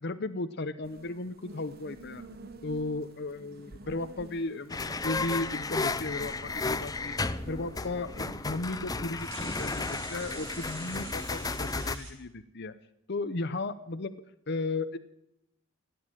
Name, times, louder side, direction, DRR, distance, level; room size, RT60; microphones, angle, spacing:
voice 1, 0.0-2.3 2.6-7.2 7.4-12.7 13.1-15.0, left 2 dB, 50° left, 10 dB, 0.8 m, -35 dB
sound 1, 0.8-11.1, right 1 dB, 45° right, 1.1 m, -49 dB
sound 2, 3.5-4.6 6.3-6.4 7.9-8.0 8.2-8.3 9.0-12.1, right 3 dB, 75° right, 6.1 m, -46 dB
sound 3, 4.7-12.0, left 3 dB, 15° left, 0.6 m, -34 dB
15.0 x 9.5 x 9.0 m, 0.82 s
head